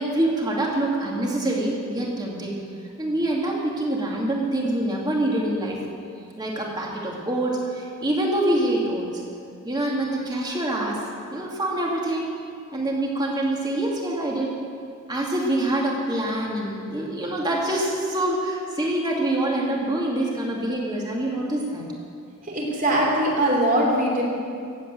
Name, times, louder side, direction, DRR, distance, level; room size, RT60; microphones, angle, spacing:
voice 1, 0.0-2.6 3.0-5.8 6.4-9.2 9.6-11.0 11.3-12.3 12.7-14.6 15.1-21.8, right 1 dB, 20° right, -2 dB, 2.4 m, -25 dB
voice 2, 22.4-24.2, right 1 dB, 40° right, -2 dB, 3.2 m, -21 dB
15.5 x 8.5 x 8.1 m, 2.3 s
head